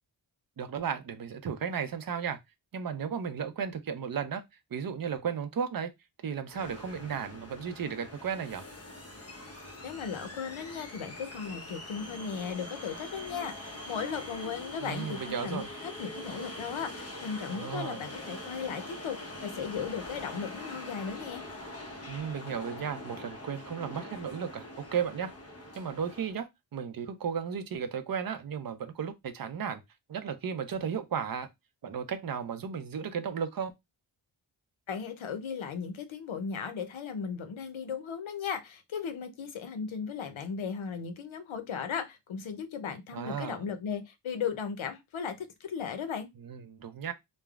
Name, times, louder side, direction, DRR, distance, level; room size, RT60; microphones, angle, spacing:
voice 1, 0.6-2.4 2.7-4.4 4.7-5.9 6.2-8.6 14.8-15.7 17.5-18.0 22.1-24.6 24.9-25.3 25.7-29.8 30.1-31.5 31.8-33.7 43.1-43.6 46.4-47.1, right 7 dB, 50° right, 0.5 m, -34 dB
sound 1, 6.5-26.4, left 1 dB, 30° left, 0.7 m, -43 dB
voice 2, 9.8-21.4 34.9-46.3, left 6 dB, 80° left, 0.7 m, -36 dB
3.2 x 2.0 x 2.3 m
wide cardioid pair, 95°, 47 cm